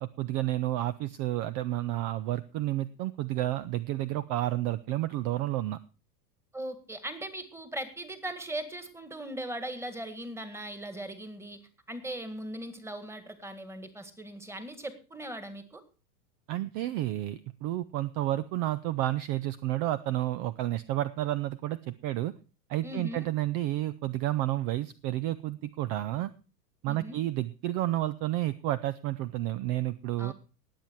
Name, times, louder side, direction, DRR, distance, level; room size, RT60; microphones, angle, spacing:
voice 1, 0.0-5.8 16.5-22.3 22.7-26.3 26.8-30.3, right 15 dB, 40° right, 16 dB, 0.6 m, -31 dB
voice 2, 6.5-11.6 11.9-15.8 22.8-23.3 26.8-27.2 30.2-30.3, right 1 dB, 5° right, 10 dB, 1.8 m, -39 dB
19.0 x 7.5 x 4.6 m, 0.34 s
hypercardioid pair, 115°, 49 cm